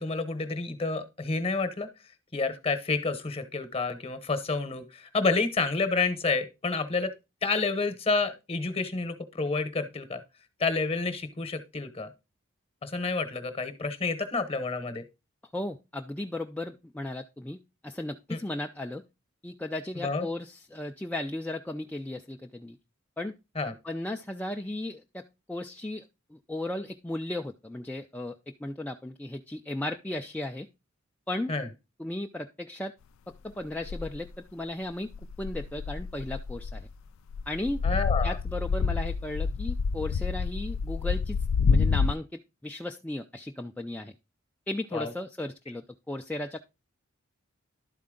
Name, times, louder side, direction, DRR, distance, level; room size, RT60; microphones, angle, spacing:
voice 1, 0.0-1.9 2.3-7.1 7.4-10.2 10.6-12.1 12.8-15.0 18.3-18.4 20.0-20.2 23.6-23.7 31.5-31.7 37.8-38.4 44.9-45.1, left 3 dB, 30° left, 10 dB, 0.9 m, -29 dB
voice 2, 15.5-17.6 17.8-19.0 19.4-22.8 23.2-23.3 23.8-25.2 25.5-26.0 26.3-30.7 31.3-31.5 32.0-32.9 33.4-35.1 35.4-36.9 37.5-37.8 38.2-41.4 41.7-44.1 44.7-46.6, left 1 dB, 5° left, 3 dB, 0.3 m, -35 dB
sound 1, 33.8-34.3 35.1-36.9 37.3-42.1, left 5 dB, 85° left, 0.4 m, -28 dB
11.5 x 4.2 x 3.7 m, 0.26 s
head